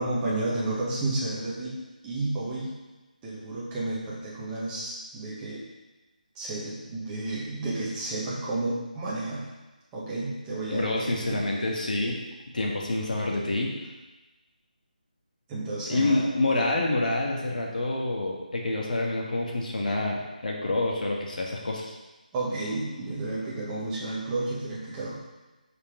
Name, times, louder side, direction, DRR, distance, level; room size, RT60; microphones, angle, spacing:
voice 1, 0.0-1.8 2.0-2.7 3.2-5.6 6.3-9.5 9.9-11.4 15.5-16.3 22.3-25.2, right 2 dB, 10° right, -7 dB, 1.4 m, -31 dB
voice 2, 10.7-12.2 12.5-13.7 15.9-21.9, left 2 dB, 65° left, -1 dB, 1.7 m, -27 dB
5.4 x 5.2 x 5.1 m, 1.1 s
figure-of-eight pair, 170°, 5 cm